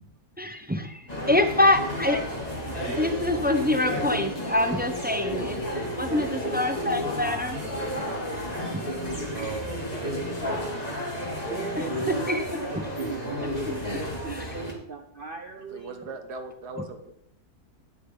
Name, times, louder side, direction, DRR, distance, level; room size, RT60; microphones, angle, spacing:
voice 1, 0.4-2.2 2.7-7.6 8.0-8.1 8.7-8.9 10.4-10.7 12.1-12.8 13.7-13.8 14.3-14.4, left 1 dB, 10° right, 6 dB, 0.5 m, -26 dB
sound 1, 1.1-14.7, equal, 25° left, 2.5 m, -32 dB
voice 2, 5.9-6.9 9.3-9.6 9.9-10.5 10.8-11.1 11.4-13.4 14.0-16.0, right 4 dB, 45° right, 5 dB, 0.7 m, -39 dB
voice 3, 9.3-10.7 15.7-17.1, right 3 dB, 80° right, 7 dB, 1.9 m, -39 dB
10.5 x 10.5 x 3.9 m, 0.73 s
omnidirectional pair, 1.7 m